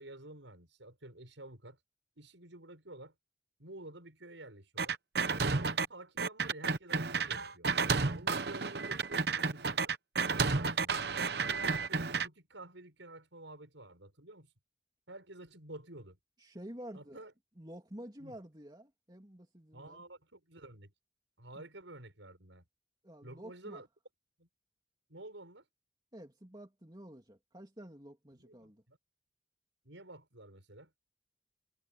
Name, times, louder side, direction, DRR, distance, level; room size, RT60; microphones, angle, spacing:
voice 1, 0.0-1.8 2.2-3.1 3.6-5.0 5.4-7.7 8.1-9.9 10.3-11.0 11.4-14.5 15.1-16.2 16.9-17.3 18.2-18.4 19.7-20.9 21.4-22.6 23.2-23.9 24.4-24.5 25.1-25.6 28.4-29.0 29.8-30.9, right 2 dB, 85° right, 7.0 m, -50 dB
sound 1, 4.8-5.9 6.2-12.3, right 4 dB, 60° right, 0.9 m, -31 dB
voice 2, 16.4-17.2 17.6-20.0 21.5-21.6 23.0-23.8 26.1-28.8, right 1 dB, 20° right, 2.8 m, -50 dB
head